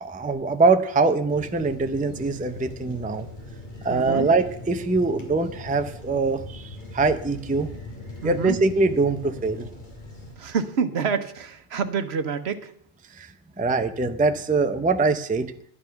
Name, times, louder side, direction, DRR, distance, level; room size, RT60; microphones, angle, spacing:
voice 1, 0.0-3.3 3.8-6.6 6.9-7.7 8.2-9.7 13.6-15.5, right 3 dB, 10° right, 8 dB, 0.5 m, -23 dB
sound 1, 1.3-10.3, left 2 dB, 45° left, 2.9 m, -40 dB
voice 2, 3.9-4.3 8.2-8.6 10.4-12.7, right 6 dB, 70° right, 10 dB, 1.2 m, -27 dB
11.5 x 10.0 x 5.8 m, 0.65 s
omnidirectional pair, 1.1 m